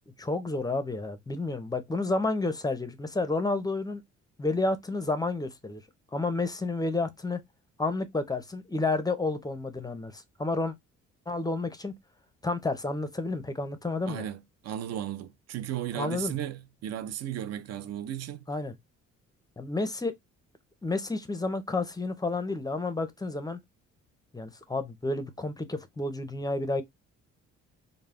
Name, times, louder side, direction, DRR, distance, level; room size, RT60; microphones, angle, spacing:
voice 1, 0.2-4.0 4.4-5.8 6.1-7.4 7.8-10.7 11.3-11.9 12.4-14.3 15.9-16.4 18.5-18.8 19.6-20.1 20.8-23.6 24.3-26.8, left 2 dB, 15° left, 0.5 m, -30 dB
voice 2, 14.1-18.4, right 11 dB, 60° right, 0.4 m, -35 dB
2.2 x 2.0 x 3.4 m
cardioid pair, 90°, 30 cm